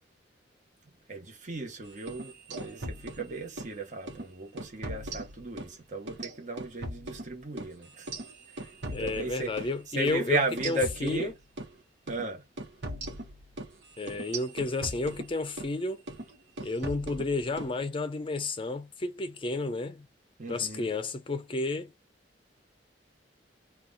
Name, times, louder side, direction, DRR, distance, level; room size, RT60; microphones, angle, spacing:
voice 1, 1.1-8.1 8.9-9.6 9.9-11.3 12.1-12.4 20.4-20.9, right 2 dB, 45° right, 1.0 m, -35 dB
sound 1, 2.0-3.8 4.1-4.3 4.6-5.8 6.1-9.8 10.1-10.2 10.6-11.7 12.1-12.3 12.6-15.8 16.1-16.3 16.6-17.7, right 1 dB, 85° right, 1.0 m, -40 dB
voice 2, 8.9-10.4 10.6-11.3 14.0-16.0 16.6-20.1 20.5-21.9, left 3 dB, 30° left, 0.5 m, -31 dB
2.9 x 2.4 x 3.8 m
head